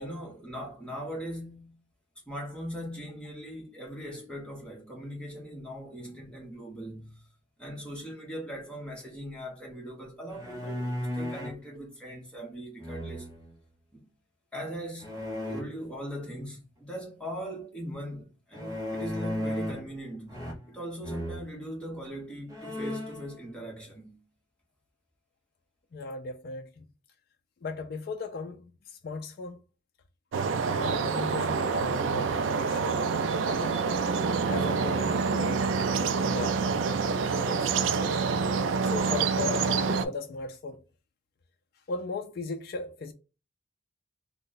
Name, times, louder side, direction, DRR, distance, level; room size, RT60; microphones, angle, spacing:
voice 1, 0.0-1.8 2.3-7.2 7.6-13.3 13.9-14.0 14.5-24.2, equal, 5° left, 1.1 m, -40 dB
sound 1, 10.3-11.6 12.8-13.5 15.0-15.6 18.5-19.9 20.3-20.8 21.0-21.4 22.1-22.2 22.5-23.2, left 1 dB, 20° right, 0.7 m, -35 dB
voice 2, 25.9-26.9 27.6-29.6 30.6-32.3 32.6-33.0 33.4-33.8 34.4-35.7 36.1-36.9 37.3-37.7 38.8-40.8 41.9-43.1, left 3 dB, 50° left, 0.4 m, -37 dB
sound 2, 30.3-40.0, right 5 dB, 80° right, 0.3 m, -27 dB
3.2 x 2.1 x 3.8 m
head